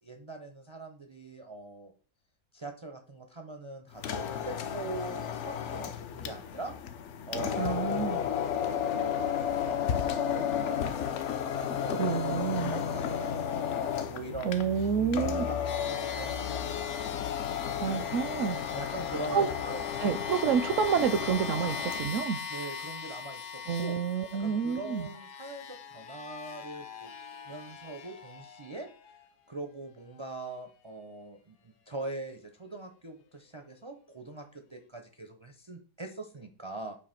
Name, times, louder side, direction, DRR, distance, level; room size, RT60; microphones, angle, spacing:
voice 1, 0.0-1.9 2.5-6.7 7.3-8.2 8.8-9.3 9.6-11.2 11.6-13.7 14.1-14.6 15.0-17.1 18.7-19.8 22.5-24.0 24.4-27.1 27.4-28.9 29.5-37.0, right 2 dB, 50° right, 0.3 m, -42 dB
sound 1, 3.9-22.2, left 8 dB, 65° left, 0.7 m, -33 dB
voice 2, 7.6-8.2 11.9-12.7 14.4-15.4 17.8-18.6 19.3-19.5 20.0-22.4 23.7-25.1, right 7 dB, 70° right, 0.8 m, -29 dB
sound 2, 15.7-29.3, left 5 dB, 85° left, 1.4 m, -42 dB
7.9 x 2.7 x 5.7 m
omnidirectional pair, 1.7 m